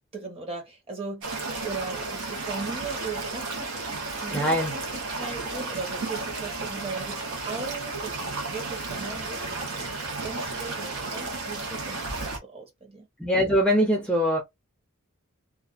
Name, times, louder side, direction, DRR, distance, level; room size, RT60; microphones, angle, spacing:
voice 1, 0.1-1.3 1.6-3.7 4.1-13.1, right 4 dB, 25° right, 0.9 m, -38 dB
sound 1, 1.2-12.4, right 3 dB, 80° right, 0.9 m, -33 dB
voice 2, 4.3-4.7 13.2-14.4, equal, 5° left, 0.4 m, -22 dB
2.5 x 2.2 x 2.4 m
head